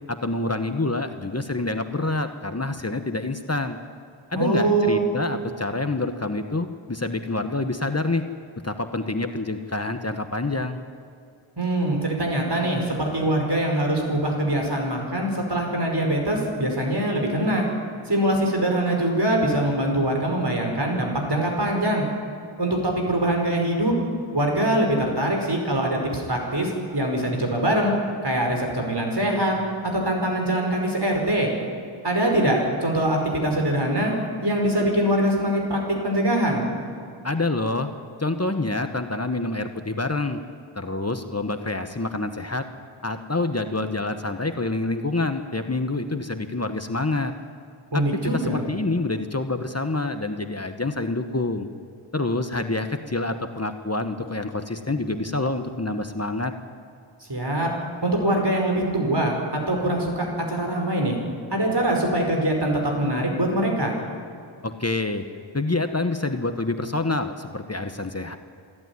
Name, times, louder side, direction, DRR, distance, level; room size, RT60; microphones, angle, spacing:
voice 1, 0.1-3.8 4.3-8.3 8.6-10.8 37.2-37.9 38.2-40.4 40.7-42.7 43.0-47.3 47.9-48.0 48.3-51.7 52.1-56.5 64.6-65.2 65.5-68.4, left 2 dB, 30° left, 7 dB, 1.2 m, -27 dB
voice 2, 4.3-5.0 11.6-17.6 18.1-22.0 22.6-23.9 24.3-27.9 28.2-29.6 29.9-31.5 32.0-34.1 34.4-36.7 47.9-48.6 57.3-57.7 58.0-61.2 61.5-64.0, right 1 dB, 50° right, 1 dB, 5.1 m, -23 dB
27.0 x 12.5 x 9.6 m, 2.4 s
wide cardioid pair, 55°, 49 cm